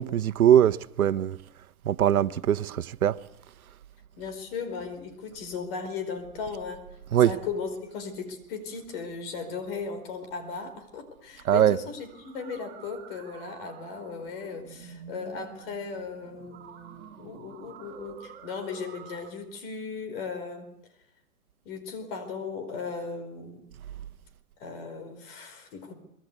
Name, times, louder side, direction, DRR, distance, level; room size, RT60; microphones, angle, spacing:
voice 1, 0.0-1.4 1.8-3.2 7.1-7.3 11.4-11.8, right 10 dB, 85° right, 1.2 m, -22 dB
voice 2, 4.2-6.9 7.2-20.7 21.6-23.7 24.6-25.9, left 5 dB, 40° left, 4.9 m, -37 dB
sound 1, 11.2-19.3, right 7 dB, 20° right, 5.4 m, -49 dB
25.5 x 21.5 x 8.4 m
hypercardioid pair, 150°, 42 cm